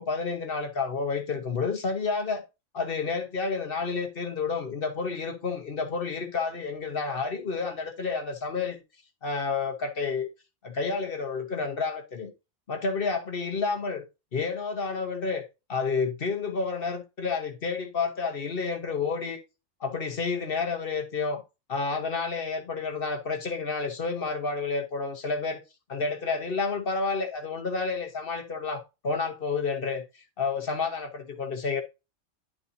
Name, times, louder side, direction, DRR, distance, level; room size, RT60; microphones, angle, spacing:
voice 1, 0.0-2.4 2.7-8.8 9.2-10.3 10.6-12.3 12.7-14.0 14.3-15.4 15.7-19.4 19.8-21.4 21.7-25.6 25.9-30.0 30.4-31.8, left 4 dB, 50° left, 1.1 m, -30 dB
11.0 x 4.2 x 2.5 m
omnidirectional pair, 1.3 m